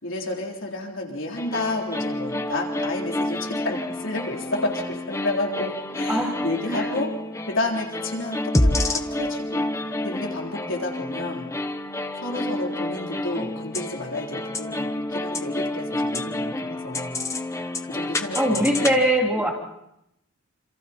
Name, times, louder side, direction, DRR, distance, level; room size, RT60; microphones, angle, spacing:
voice 1, 0.0-7.1 7.5-9.7 10.0-11.5 12.2-17.2 17.9-19.0 19.4-19.5, left 2 dB, 60° left, 0 dB, 3.8 m, -31 dB
sound 1, 1.4-18.9, left 1 dB, 15° left, 1.0 m, -29 dB
voice 2, 6.1-6.4 6.7-6.9 18.3-19.5, right 1 dB, 10° right, -1 dB, 3.2 m, -22 dB
27.5 x 27.0 x 4.4 m, 0.81 s
head